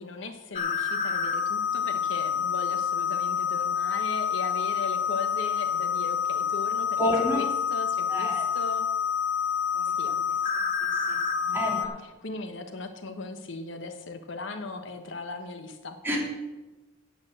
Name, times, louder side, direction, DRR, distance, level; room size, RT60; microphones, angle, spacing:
voice 1, 0.0-7.0 7.3-8.9 10.0-10.1 11.5-11.9 12.2-16.2, left 3 dB, 65° left, 8 dB, 1.0 m, -38 dB
sound 1, 0.5-11.9, left 7 dB, 45° left, 1.2 m, -28 dB
voice 2, 7.0-7.4 8.1-8.4 9.7-10.2 10.8-11.2 11.5-11.9 16.0-16.2, left 1 dB, 10° right, -3 dB, 3.0 m, -29 dB
9.1 x 8.3 x 7.4 m, 1.1 s
head